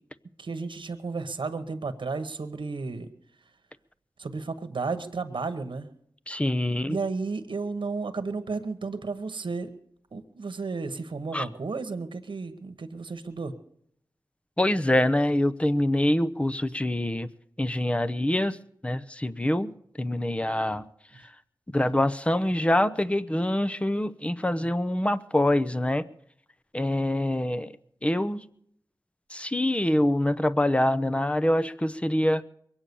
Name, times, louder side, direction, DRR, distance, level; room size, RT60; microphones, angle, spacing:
voice 1, 0.4-3.1 4.2-5.9 6.9-9.7 10.1-13.5 21.9-22.0, right 4 dB, 85° right, 9 dB, 1.1 m, -33 dB
voice 2, 6.3-7.0 11.3-11.5 14.6-17.3 17.6-18.6 18.8-19.7 20.0-20.9 21.7-26.0 26.7-27.7 28.0-28.4 29.3-32.4, left 1 dB, 15° left, 14 dB, 0.7 m, -25 dB
22.5 x 8.8 x 6.9 m, 0.69 s
wide cardioid pair, 60°, 8 cm